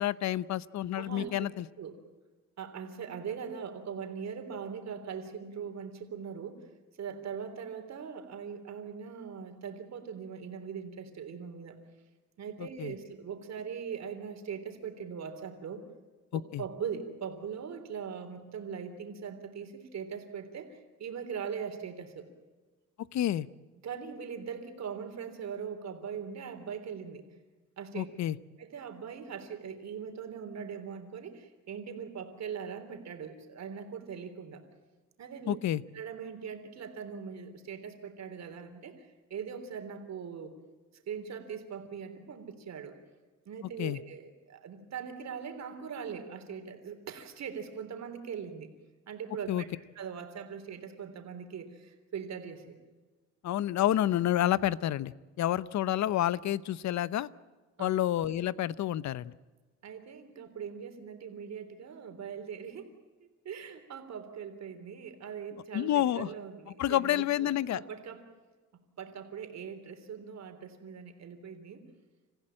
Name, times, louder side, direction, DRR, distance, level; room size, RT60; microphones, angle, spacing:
voice 1, 0.0-1.7 12.6-12.9 16.3-16.6 23.1-23.5 27.9-28.4 35.5-35.8 43.8-44.0 49.5-49.6 53.4-57.3 57.8-59.3 65.7-66.3 66.8-67.8, left 12 dB, 65° left, 19 dB, 0.8 m, -29 dB
voice 2, 0.9-1.5 1.8-2.0 2.6-6.7 7.0-11.8 12.4-15.8 16.3-22.3 23.8-27.2 27.8-28.1 28.6-34.6 35.2-35.6 35.9-40.5 40.9-43.0 43.5-48.7 49.1-49.7 50.0-52.8 57.8-58.0 59.8-62.9 63.2-68.2 69.0-71.9, right 7 dB, 60° right, 6 dB, 3.5 m, -41 dB
27.5 x 15.5 x 8.8 m, 1.3 s
cardioid pair, 90°, 30 cm